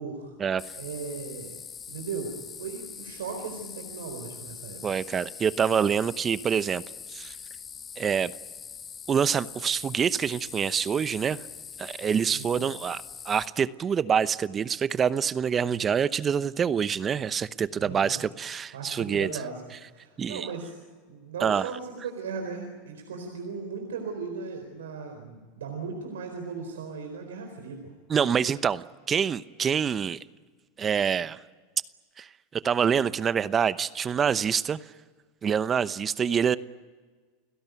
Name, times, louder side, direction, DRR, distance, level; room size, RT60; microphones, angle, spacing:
voice 1, 0.0-0.3 0.8-1.6 1.9-4.8 12.3-12.6 17.8-18.2 18.7-19.6 19.9-20.7 21.1-27.9, right 5 dB, 85° right, 4 dB, 4.2 m, -37 dB
sound 1, 0.6-13.5, left 7 dB, 30° left, 2.0 m, -43 dB
voice 2, 4.8-6.8 7.1-7.3 8.0-8.3 9.1-11.4 11.8-19.3 20.2-20.5 21.4-21.7 28.1-30.2 30.8-31.4 32.2-34.8 35.4-36.6, right 7 dB, 30° right, 15 dB, 0.9 m, -26 dB
29.0 x 17.0 x 9.3 m, 1.4 s
hypercardioid pair, 100°, 0 cm